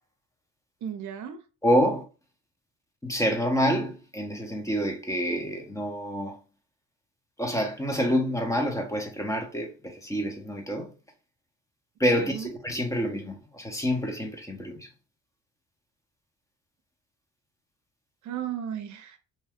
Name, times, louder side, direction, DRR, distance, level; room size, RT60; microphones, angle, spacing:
voice 1, 0.8-1.4 12.2-12.5 18.2-19.2, right 9 dB, 70° right, 0.6 m, -35 dB
voice 2, 1.6-2.0 3.0-6.4 7.4-10.9 12.0-14.9, equal, 10° left, 0.9 m, -27 dB
2.9 x 2.3 x 3.5 m
cardioid pair, 90°, 30 cm